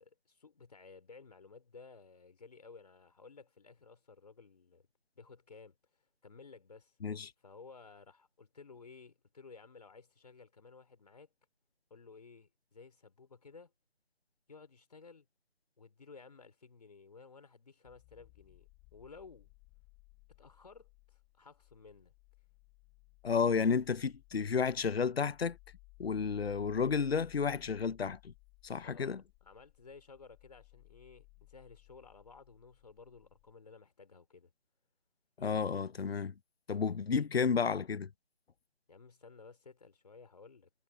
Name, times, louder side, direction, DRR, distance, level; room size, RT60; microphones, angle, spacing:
voice 1, 0.0-4.8 5.1-7.0 7.4-11.3 11.9-13.7 14.5-15.2 15.8-19.5 20.4-22.1 28.8-34.5 38.9-40.7, left 4 dB, 40° left, 4.5 m, -55 dB
sound 1, 17.9-33.5, left 28 dB, 10° left, 3.1 m, -61 dB
voice 2, 23.2-25.6 26.0-28.3 28.6-29.2 35.4-36.3 36.7-38.1, left 6 dB, 65° left, 0.6 m, -31 dB
figure-of-eight pair, 160°, 32 cm